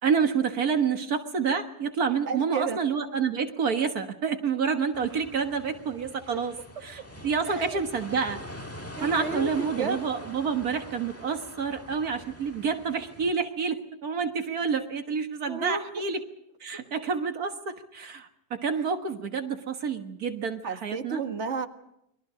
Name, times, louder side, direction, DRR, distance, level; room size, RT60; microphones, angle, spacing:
voice 1, 0.0-6.6 6.8-8.4 9.0-16.2 16.6-21.2, right 6 dB, 70° right, 6 dB, 1.9 m, -28 dB
voice 2, 2.3-2.8 6.3-6.4 7.4-7.8 9.0-10.0 15.5-15.9 20.6-21.7, right 4 dB, 45° right, 6 dB, 1.9 m, -32 dB
sound 1, 4.9-13.3, left 1 dB, 10° left, 1.6 m, -43 dB
30.0 x 22.5 x 5.0 m, 0.79 s
omnidirectional pair, 1.7 m